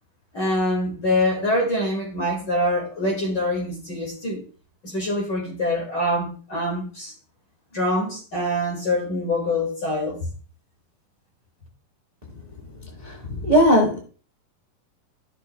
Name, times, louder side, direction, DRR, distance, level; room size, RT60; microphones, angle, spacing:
voice 1, 0.3-4.4 4.8-7.1 7.7-10.3, left 1 dB, 40° left, 2.1 m, -25 dB
voice 2, 13.4-14.0, equal, 25° right, 0.8 m, -16 dB
14.5 x 6.8 x 2.2 m
omnidirectional pair, 4.1 m